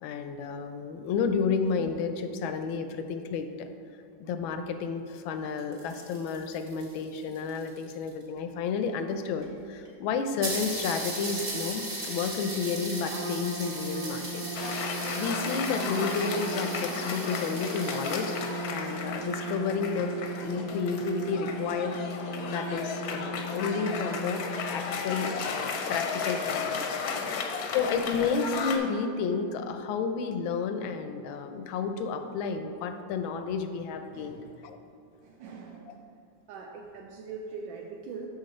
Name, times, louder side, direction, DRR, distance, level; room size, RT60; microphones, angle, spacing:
voice 1, 0.0-3.7 4.2-14.5 14.9-20.1 20.4-27.0 27.3-27.5 27.7-34.8, left 5 dB, 85° left, 8 dB, 1.4 m, -31 dB
sound 1, 5.4-8.2 9.1-9.2 9.4-9.5 9.9-10.0 10.4-18.6, right 1 dB, 40° right, 1.8 m, -38 dB
Trumpet, 13.1-25.2, right 1 dB, 60° right, 0.7 m, -38 dB
Cheering / Applause, 14.5-28.8, left 5 dB, 70° left, 1.0 m, -34 dB
voice 2, 27.1-27.6 34.1-34.5 35.2-36.2 36.5-38.3, right 5 dB, 80° right, 1 dB, 1.3 m, -43 dB
6.5 x 6.3 x 4.2 m, 2.6 s
omnidirectional pair, 2.1 m